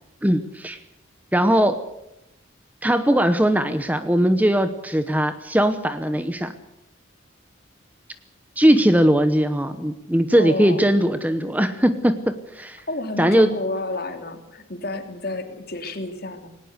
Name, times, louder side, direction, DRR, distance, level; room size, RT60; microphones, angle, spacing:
voice 1, 0.2-0.8 1.3-1.8 2.8-6.5 8.6-12.8 13.2-13.5, equal, 10° right, 10 dB, 0.9 m, -19 dB
voice 2, 10.4-10.8 12.9-16.5, left 2 dB, 50° left, 6 dB, 2.8 m, -30 dB
19.5 x 18.5 x 8.1 m, 0.87 s
head